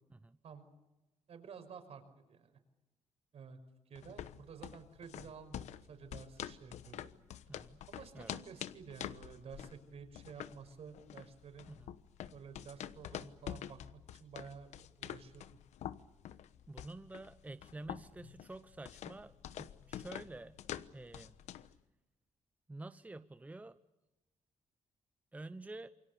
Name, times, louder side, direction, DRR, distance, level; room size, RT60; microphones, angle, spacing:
voice 1, 1.3-2.6 3.3-3.6 3.9-7.1 7.9-11.7 12.3-15.4, right 6 dB, 65° right, 7 dB, 5.6 m, -52 dB
sound 1, 4.0-21.8, left 11 dB, 85° left, 1.1 m, -47 dB
voice 2, 7.5-7.8 8.1-8.3 11.7-12.0 16.7-20.6 20.9-21.3 22.7-23.8 25.3-25.9, right 2 dB, 15° right, 11 dB, 0.9 m, -49 dB
28.0 x 24.5 x 6.9 m, 1.0 s
cardioid pair, 110°, 11 cm